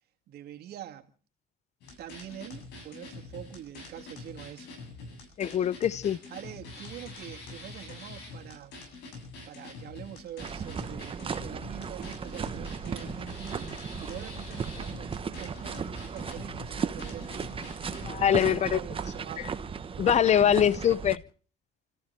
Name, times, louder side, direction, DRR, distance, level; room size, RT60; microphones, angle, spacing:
voice 1, 0.3-1.1 2.0-4.8 6.3-9.0 9.5-17.4 18.1-19.5, right 11 dB, 70° right, 2.2 m, -45 dB
sound 1, 1.8-18.1, left 3 dB, 85° left, 8.0 m, -45 dB
voice 2, 5.4-6.2 18.1-18.8 20.0-21.2, left 9 dB, 40° left, 0.7 m, -23 dB
sound 2, 10.4-21.2, right 6 dB, 30° right, 1.2 m, -36 dB
29.5 x 14.5 x 3.4 m
cardioid pair, 110°, 17 cm